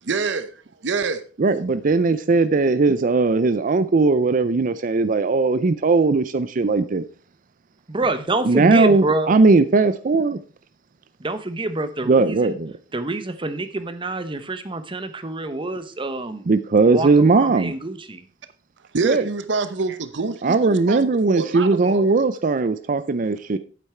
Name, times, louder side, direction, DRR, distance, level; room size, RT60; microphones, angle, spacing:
voice 1, 0.0-1.2 18.9-22.3, right 4 dB, 75° right, 0.8 m, -27 dB
voice 2, 1.4-7.0 8.4-10.4 12.1-12.7 16.5-17.7 19.0-19.2 20.4-23.6, right 3 dB, 45° right, 0.5 m, -18 dB
voice 3, 7.9-9.3 11.2-12.6 12.9-16.4 16.9-18.3, right 2 dB, 30° right, 1.0 m, -26 dB
8.6 x 8.4 x 4.4 m
head